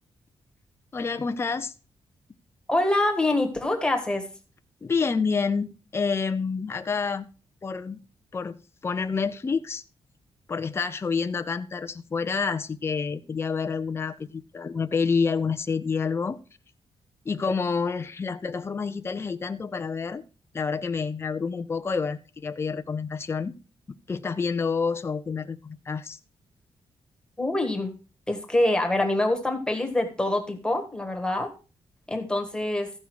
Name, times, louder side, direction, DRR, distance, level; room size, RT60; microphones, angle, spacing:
voice 1, 0.9-1.7 4.8-7.3 7.6-8.0 8.3-8.6 8.8-9.8 10.5-16.4 17.3-20.2 20.5-23.5 24.1-26.2, left 5 dB, 25° left, 8 dB, 0.6 m, -28 dB
voice 2, 2.7-4.2 27.4-27.9 28.3-31.5 32.1-32.9, left 1 dB, 10° left, 4 dB, 1.5 m, -25 dB
14.5 x 5.4 x 4.7 m, 0.35 s
wide cardioid pair, 155°, 10 cm